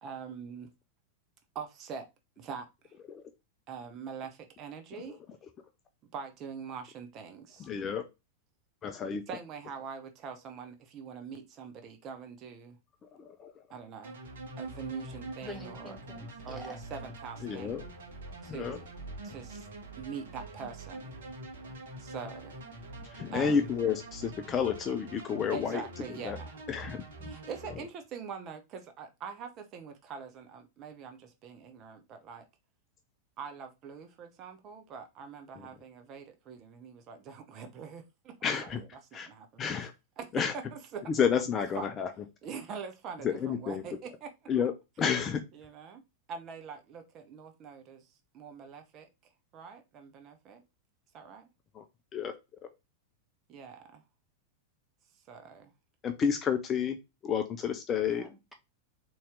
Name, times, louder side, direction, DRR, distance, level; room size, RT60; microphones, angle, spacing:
voice 1, 0.0-0.7 1.5-2.1 2.4-2.9 3.7-5.2 6.1-7.7 9.3-12.8 13.7-14.2 14.6-16.0 16.4-17.8 18.4-18.8 19.2-19.7 20.0-21.1 22.0-22.6 23.3-23.7 25.5-26.5 27.2-32.4 33.4-38.9 39.1-39.6 40.2-40.3 40.5-41.0 41.8-41.9 42.4-44.3 45.5-46.0 46.3-48.1 48.3-49.1 49.5-50.6 51.1-51.5 53.5-54.0 55.3-55.7, right 6 dB, 35° right, 0.8 m, -43 dB
voice 2, 7.6-8.0 8.8-9.2 13.2-13.5 17.4-17.8 18.5-18.8 23.1-25.8 26.2-26.4 26.7-27.3 38.4-38.8 39.1-39.3 39.6-39.9 40.3-40.5 41.1-42.1 43.2-43.8 44.5-44.7 45.0-45.4 51.7-51.8 52.1-52.3 56.0-57.0 57.2-58.3, left 7 dB, 25° left, 0.5 m, -30 dB
sound 1, 14.0-27.7, right 2 dB, 60° right, 1.3 m, -45 dB
voice 3, 15.4-16.8 58.1-58.5, left 1 dB, ahead, 1.2 m, -46 dB
4.2 x 3.1 x 3.6 m
figure-of-eight pair, 90°, 0 cm